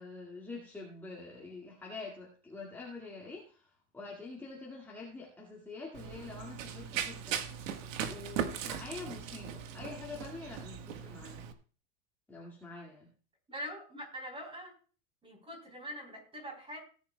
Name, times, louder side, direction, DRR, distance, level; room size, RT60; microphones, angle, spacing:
voice 1, 0.0-7.5 8.1-11.4 12.3-13.1, left 3 dB, 5° left, -4 dB, 1.9 m, -46 dB
Run, 5.9-11.5, right 9 dB, 75° right, 1.5 m, -39 dB
voice 2, 13.5-14.7 15.2-16.8, equal, 15° right, 4 dB, 4.0 m, -43 dB
17.5 x 10.0 x 2.2 m, 0.39 s
supercardioid pair, 155°, 39 cm